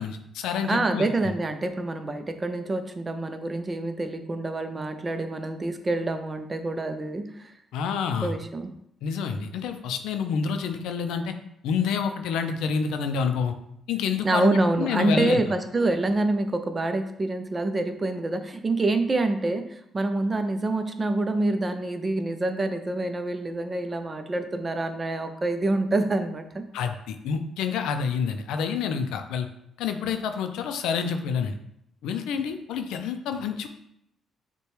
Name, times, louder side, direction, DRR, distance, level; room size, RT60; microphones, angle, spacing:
voice 1, 0.0-1.1 7.7-8.3 9.0-11.3 11.6-13.5 13.9-15.4 26.7-29.5 29.8-31.6 32.0-33.7, left 6 dB, 90° left, 7 dB, 0.4 m, -28 dB
voice 2, 0.7-7.5 8.2-8.7 14.2-26.6, right 2 dB, 25° right, 8 dB, 0.5 m, -26 dB
6.6 x 2.2 x 3.1 m, 0.76 s
cardioid pair, 90°, 0 cm